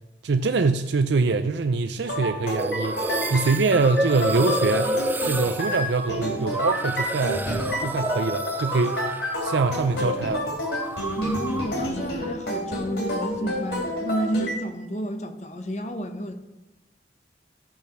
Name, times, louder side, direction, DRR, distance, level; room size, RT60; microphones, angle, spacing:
voice 1, 0.2-5.0 5.2-7.4 7.8-9.0 9.4-10.4, right 4 dB, 75° right, 8 dB, 0.5 m, -24 dB
sound 1, 2.0-14.6, left 1 dB, 65° left, 3.8 m, -29 dB
sound 2, 2.6-10.0 10.2-11.8, right 1 dB, 10° right, 0.3 m, -30 dB
voice 2, 11.2-16.3, right 1 dB, 40° left, 7 dB, 1.0 m, -30 dB
15.5 x 5.8 x 6.2 m, 1.1 s
head